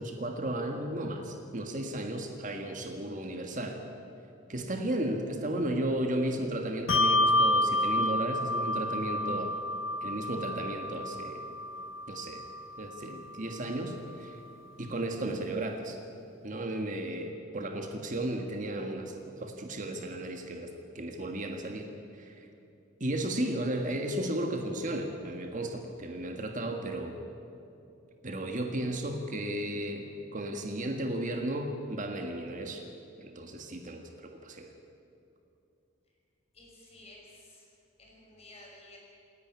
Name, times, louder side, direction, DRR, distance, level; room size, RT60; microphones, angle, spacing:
voice 1, 0.0-3.8 4.5-9.6 10.0-11.4 12.1-12.4 12.8-14.4 14.8-16.0 16.4-20.7 20.9-21.9 22.2-22.5 23.0-27.1 28.2-32.8 33.2-34.0 34.4-34.7, right 1 dB, 40° right, 4 dB, 1.7 m, -34 dB
Bell, 6.9-13.7, left 1 dB, 70° left, 0.7 m, -29 dB
voice 2, 36.5-37.7 38.0-39.0, left 2 dB, 30° left, -2 dB, 5.7 m, -53 dB
27.5 x 11.0 x 9.7 m, 2.7 s
head